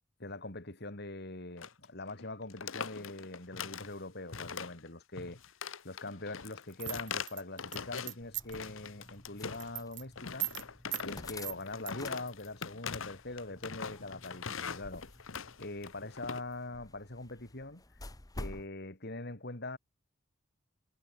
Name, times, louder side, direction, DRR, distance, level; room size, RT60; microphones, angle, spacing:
voice 1, 0.2-5.4 5.8-10.5 11.0-15.0 15.6-17.8 18.4-19.8, left 2 dB, 50° left, 3.0 m, -43 dB
sound 1, 1.6-1.8 2.1-2.2 2.5-3.9 4.3-4.9 5.2-8.2 8.5-9.8 10.1-16.4, left 6 dB, 70° left, 1.1 m, -42 dB
sound 2, 6.8-8.7 9.0-9.3 9.5-10.0 10.4-10.6 10.9-11.1 11.4-11.9, right 17 dB, 55° right, 2.0 m, -38 dB
sound 3, 8.2-18.7, left 2 dB, 15° left, 1.0 m, -50 dB
head